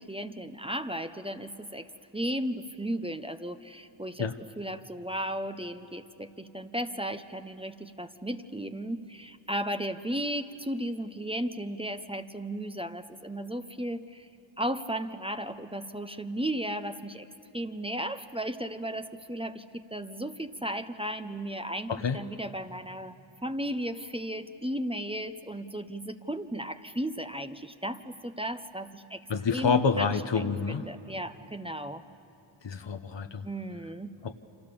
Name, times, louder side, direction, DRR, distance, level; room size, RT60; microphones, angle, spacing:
voice 1, 0.0-4.3 4.6-14.3 14.6-17.3 17.5-23.2 23.4-29.2 29.5-32.0 33.4-34.1, right 1 dB, 10° right, 9 dB, 1.0 m, -35 dB
voice 2, 29.3-30.9 32.6-33.5 34.2-34.3, left 5 dB, 60° left, 8 dB, 1.2 m, -28 dB
29.5 x 26.0 x 7.1 m, 2.7 s
cardioid pair, 40°, 48 cm